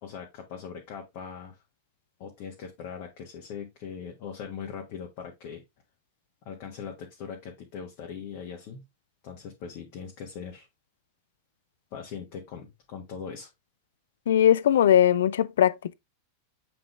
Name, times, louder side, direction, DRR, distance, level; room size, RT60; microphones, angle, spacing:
voice 1, 0.0-1.6 2.2-5.6 6.4-8.8 9.2-10.7 11.9-13.5, left 6 dB, 45° left, 1.5 m, -40 dB
voice 2, 14.3-15.9, left 10 dB, 60° left, 0.4 m, -20 dB
7.6 x 4.0 x 3.3 m
figure-of-eight pair, 90°, 0 cm